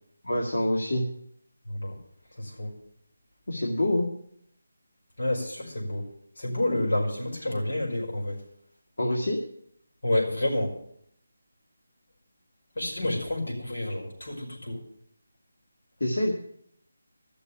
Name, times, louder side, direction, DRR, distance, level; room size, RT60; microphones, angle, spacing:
voice 1, 0.2-1.0 3.5-4.1 9.0-9.4 16.0-16.3, left 1 dB, 85° left, -3 dB, 2.2 m, -26 dB
voice 2, 2.4-2.7 5.2-6.1 6.4-8.4 10.0-10.7 12.8-14.8, left 1 dB, 60° left, -2 dB, 5.4 m, -29 dB
13.0 x 6.9 x 8.4 m, 0.69 s
figure-of-eight pair, 175°, 0 cm